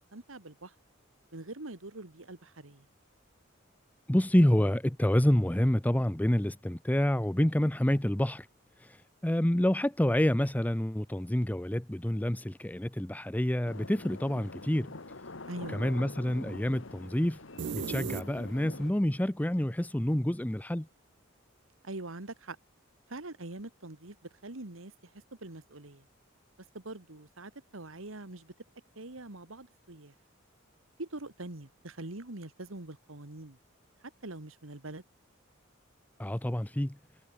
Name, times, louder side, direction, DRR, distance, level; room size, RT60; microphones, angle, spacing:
voice 1, 0.1-0.7 1.3-2.8 15.5-15.8 21.8-22.6 23.1-24.2 24.4-24.9 25.4-26.0 26.7-28.5 29.0-30.1 31.0-33.6 34.2-35.0, right 2 dB, 80° right, 2.2 m, -43 dB
voice 2, 4.1-8.5 8.8-14.9 15.7-17.4 17.7-20.9 36.2-37.0, left 1 dB, 10° left, 0.6 m, -28 dB
sound 1, 13.7-18.9, left 2 dB, 65° left, 1.6 m, -45 dB
sound 2, 17.6-18.8, right 6 dB, 55° right, 0.4 m, -36 dB
head